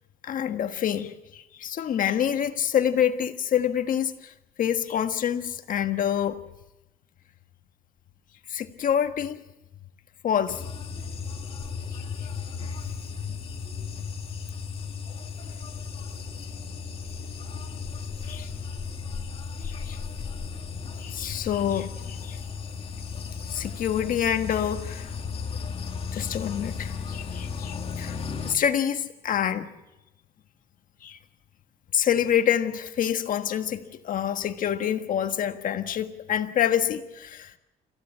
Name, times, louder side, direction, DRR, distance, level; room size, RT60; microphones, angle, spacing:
voice 1, 0.2-4.3 4.6-6.4 8.5-9.4 10.2-10.6 11.9-12.3 13.3-13.4 13.7-14.0 18.3-18.5 19.6-20.0 20.9-22.4 23.5-25.1 26.1-28.2 28.4-29.7 31.0-31.2 31.9-37.5, left 9 dB, 55° left, 1.5 m, -27 dB
sound 1, 10.5-28.6, left 5 dB, 35° left, 2.3 m, -35 dB
26.5 x 16.0 x 7.4 m
cardioid pair, 110°, 17 cm